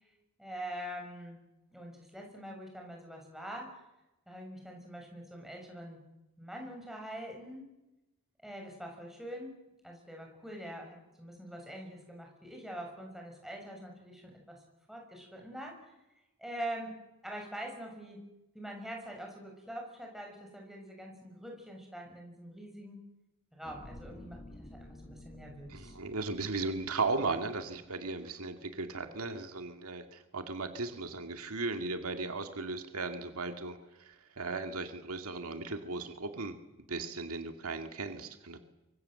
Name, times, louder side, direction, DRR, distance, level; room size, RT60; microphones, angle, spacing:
voice 1, 0.4-1.4 1.7-3.8 4.3-6.0 6.4-7.7 8.4-9.5 9.8-14.6 14.9-15.9 16.4-18.2 18.5-23.0 23.5-26.0, right 1 dB, ahead, 1 dB, 6.6 m, -44 dB
sound 1, 23.6-28.1 28.6-28.8, left 1 dB, 25° left, 1.7 m, -52 dB
voice 2, 25.7-36.6 36.9-38.6, right 3 dB, 75° right, 6 dB, 2.1 m, -36 dB
25.5 x 24.5 x 7.8 m, 0.97 s
head